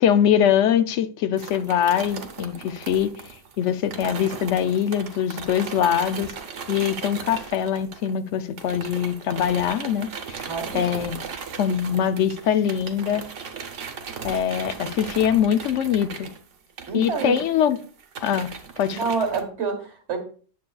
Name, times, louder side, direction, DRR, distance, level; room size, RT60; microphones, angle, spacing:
voice 1, 0.0-3.1 3.6-6.3 6.7-10.4 10.7-11.2 11.6-13.2 14.2-16.3 16.9-17.8 18.2-18.5 18.8-19.0, left 9 dB, 80° left, 0.9 m, -23 dB
sound 1, 1.4-8.3 8.6-19.4, right 6 dB, 85° right, 1.2 m, -37 dB
voice 2, 10.4-11.0 16.9-17.4 18.9-20.2, right 5 dB, 65° right, 1.9 m, -28 dB
9.4 x 6.8 x 2.3 m
omnidirectional pair, 1.2 m